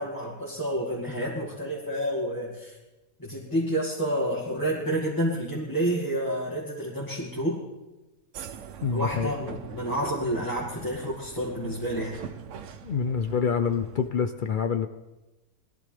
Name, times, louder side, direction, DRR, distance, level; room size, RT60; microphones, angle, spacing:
voice 1, 0.0-2.8 3.2-7.6 8.9-12.2, right 1 dB, 15° left, -7 dB, 2.2 m, -29 dB
sound 1, 8.3-14.1, right 8 dB, 60° right, 1.0 m, -42 dB
voice 2, 8.8-9.3 12.8-14.9, left 6 dB, 75° left, 10 dB, 0.4 m, -26 dB
20.5 x 13.5 x 3.4 m, 1.1 s
omnidirectional pair, 1.5 m